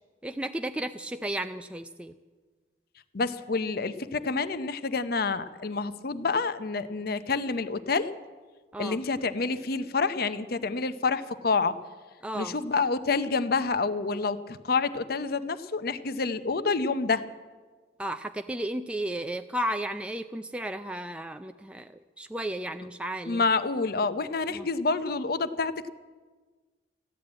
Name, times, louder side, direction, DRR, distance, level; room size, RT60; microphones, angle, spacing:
voice 1, 0.2-2.1 8.7-9.0 12.2-12.6 18.0-23.4 24.5-24.7, right 1 dB, 5° right, 7 dB, 0.4 m, -34 dB
voice 2, 3.1-8.1 8.8-11.7 12.3-17.2 23.3-25.7, left 4 dB, 60° left, 12 dB, 0.7 m, -28 dB
15.5 x 10.5 x 8.7 m, 1.4 s
head